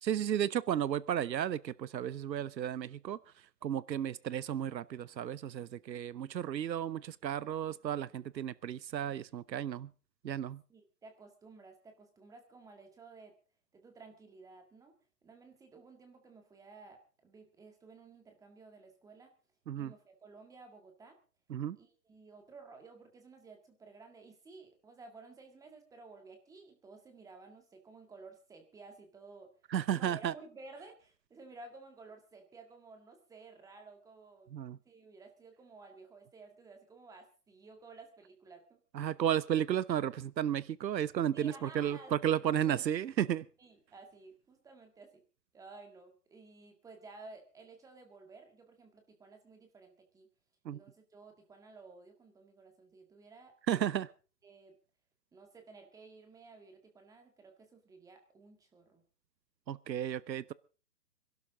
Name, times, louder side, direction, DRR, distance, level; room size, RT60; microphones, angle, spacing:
voice 1, 0.0-3.2 3.6-9.9 10.2-10.6 19.7-19.9 21.5-21.8 29.7-30.3 34.5-34.8 38.9-43.5 50.6-50.8 53.7-54.1 59.7-60.5, right 10 dB, 85° right, 20 dB, 0.8 m, -33 dB
voice 2, 10.7-13.4 13.7-19.3 19.7-21.2 21.8-29.5 29.9-34.5 34.9-38.8 41.3-42.8 43.6-45.2 45.5-50.3 50.7-53.5 54.4-54.8 55.3-59.0, right 3 dB, 5° right, 5 dB, 1.8 m, -54 dB
27.0 x 12.0 x 3.7 m, 0.36 s
hypercardioid pair, 155°, 50 cm